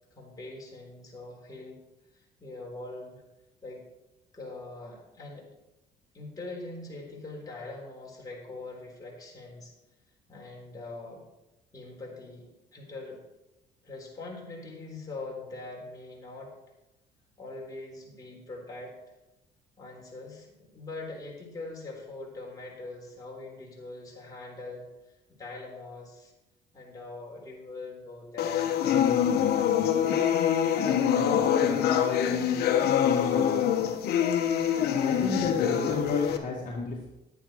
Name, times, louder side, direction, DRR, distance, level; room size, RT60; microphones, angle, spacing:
voice 1, 0.1-1.8 2.1-3.2 3.6-3.8 4.3-5.5 6.1-9.7 10.3-11.3 11.7-13.2 13.8-16.5 17.4-18.9 19.8-24.9 25.4-26.3 26.7-30.2, left 2 dB, 20° left, -2 dB, 3.8 m, -42 dB
sound 1, 28.4-36.4, left 9 dB, 70° left, 1.1 m, -25 dB
voice 2, 34.9-37.1, left 4 dB, 50° left, -2 dB, 1.8 m, -31 dB
11.0 x 8.9 x 4.5 m, 0.97 s
cardioid pair, 110°, 17 cm